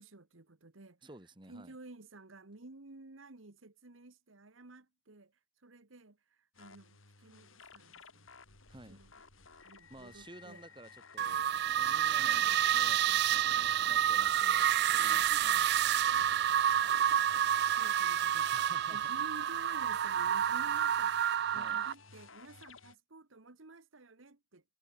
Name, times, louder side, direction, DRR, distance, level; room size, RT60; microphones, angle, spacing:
voice 1, 0.0-1.0 1.5-5.3 5.6-8.3 8.9-9.1 9.6-10.6 12.1-12.7 13.3-14.2 14.9-16.4 16.7-18.5 18.9-24.6, right 2 dB, 80° right, 1.5 m, -53 dB
voice 2, 1.0-1.7 8.7-9.0 9.9-15.6 18.5-19.2 21.5-21.8, right 1 dB, 25° right, 2.1 m, -54 dB
sound 1, 6.5-23.0, left 4 dB, 90° left, 5.1 m, -56 dB
sound 2, 11.2-21.9, right 10 dB, 55° right, 0.3 m, -29 dB
head